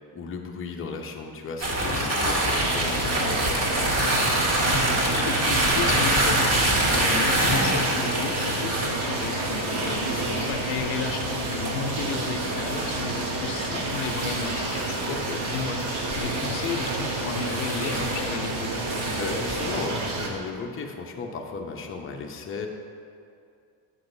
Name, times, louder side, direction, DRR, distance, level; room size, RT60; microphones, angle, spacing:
voice 1, 0.1-3.7 9.8-10.5 10.8-10.9 15.0-15.4 18.7-18.9 19.2-22.7, left 4 dB, 25° left, 2 dB, 0.8 m, -35 dB
sound 1, 1.6-19.9, right 1 dB, 30° right, 1.8 m, -27 dB
sound 2, 2.6-20.3, right 2 dB, 80° right, 1.4 m, -30 dB
voice 2, 4.8-10.0 10.3-15.0 15.5-18.7, left 5 dB, 75° left, 5 dB, 0.7 m, -33 dB
7.8 x 7.7 x 2.7 m, 2.4 s
supercardioid pair, 90°, 47 cm